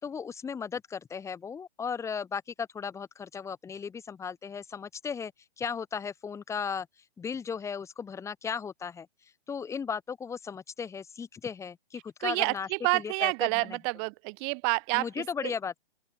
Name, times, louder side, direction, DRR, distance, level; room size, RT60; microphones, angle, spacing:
voice 1, 0.0-6.9 7.2-9.1 9.5-12.7 12.9-13.8 14.9-15.8, left 6 dB, 10° left, 3.8 m, -36 dB
voice 2, 12.2-15.0 15.4-15.5, right 40 dB or more, 25° right, 1.3 m, -28 dB
open air
hypercardioid pair, 155°, 33 cm